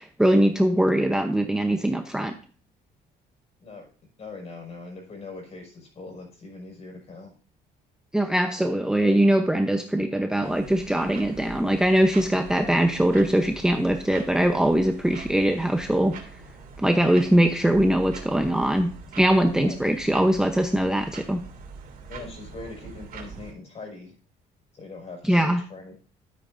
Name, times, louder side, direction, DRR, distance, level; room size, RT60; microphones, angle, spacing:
voice 1, 0.0-2.4 8.1-16.1 16.8-18.9 19.2-21.4 25.2-25.6, right 1 dB, 5° right, 5 dB, 0.8 m, -22 dB
voice 2, 4.2-7.3 19.5-19.8 22.1-24.2 24.7-26.0, left 3 dB, 40° left, 1 dB, 5.7 m, -41 dB
sound 1, 10.4-23.5, right 4 dB, 55° right, 3.1 m, -43 dB
13.0 x 9.1 x 2.7 m, 0.41 s
cardioid pair, 110°, 17 cm